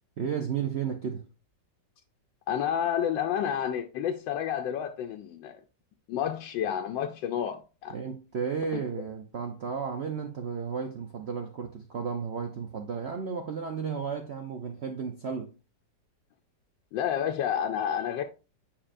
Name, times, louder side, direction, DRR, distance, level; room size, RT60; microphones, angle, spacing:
voice 1, 0.2-1.2 7.9-15.5, right 6 dB, 60° right, 0.7 m, -33 dB
voice 2, 2.5-5.6 6.1-7.9 16.9-18.2, left 9 dB, 90° left, 1.3 m, -30 dB
8.7 x 4.7 x 2.5 m
omnidirectional pair, 2.0 m